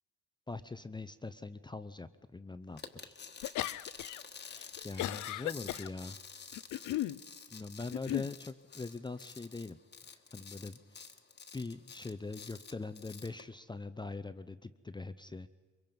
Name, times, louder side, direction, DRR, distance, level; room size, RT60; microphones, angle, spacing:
voice 1, 0.5-3.2 4.8-6.2 7.5-9.8 10.1-11.1 11.5-15.5, left 3 dB, 15° left, 12 dB, 0.6 m, -42 dB
sound 1, 2.8-13.4, left 5 dB, 35° left, 1.3 m, -50 dB
sound 2, 3.4-4.2 4.5-5.9 6.5-7.2 7.9-8.3, left 15 dB, 75° left, 0.6 m, -36 dB
23.5 x 22.5 x 5.3 m, 1.4 s
cardioid pair, 90°, 30 cm